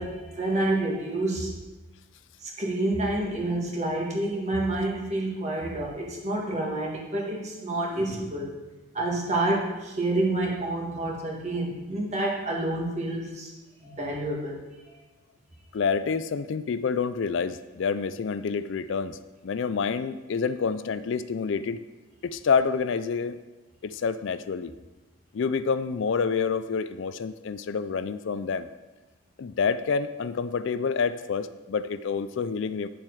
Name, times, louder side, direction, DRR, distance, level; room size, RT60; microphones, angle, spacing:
voice 1, 0.0-1.5 2.4-8.5 8.9-13.5 13.8-14.6, right 2 dB, 30° right, -2 dB, 1.8 m, -28 dB
voice 2, 15.7-19.2 19.4-21.8 22.2-23.4 23.8-24.7 25.3-28.7 29.4-32.9, left 5 dB, 60° left, 13 dB, 0.4 m, -28 dB
9.5 x 7.4 x 4.8 m, 1.2 s
head